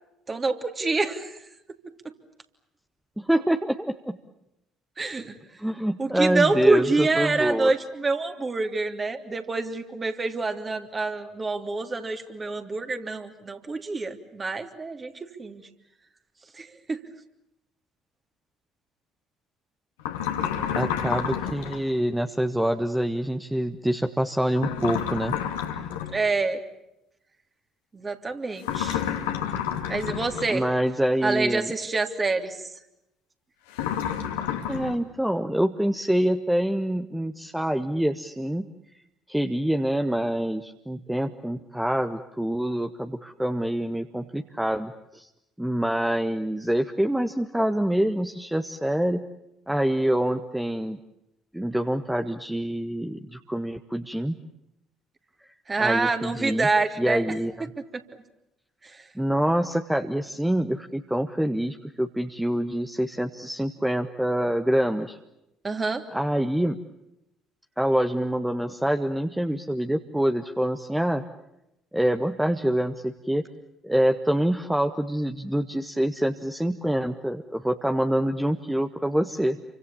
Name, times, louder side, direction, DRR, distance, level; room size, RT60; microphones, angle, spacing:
voice 1, 0.3-1.4 5.0-5.3 6.0-15.1 15.4-15.7 16.6-17.0 26.1-26.6 27.9-29.0 29.9-30.6 31.2-32.6 55.7-57.2 57.6-57.7 58.9-59.0 65.6-66.0, right 3 dB, 25° right, 5 dB, 3.2 m, -26 dB
voice 2, 3.2-4.2 5.6-7.7 20.7-25.3 30.5-31.7 34.7-38.7 39.3-45.3 45.6-49.2 49.7-51.0 51.5-54.3 55.8-56.7 57.0-57.7 59.1-65.2 66.1-66.8 67.8-71.2 71.9-73.4 73.8-79.6, right 1 dB, 5° right, 6 dB, 1.5 m, -26 dB
sound 1, 20.0-21.8 24.6-26.2 28.6-30.6 33.7-34.9, left 9 dB, 70° left, 2.4 m, -29 dB
29.0 x 25.0 x 7.2 m, 0.87 s
figure-of-eight pair, 50°, 0 cm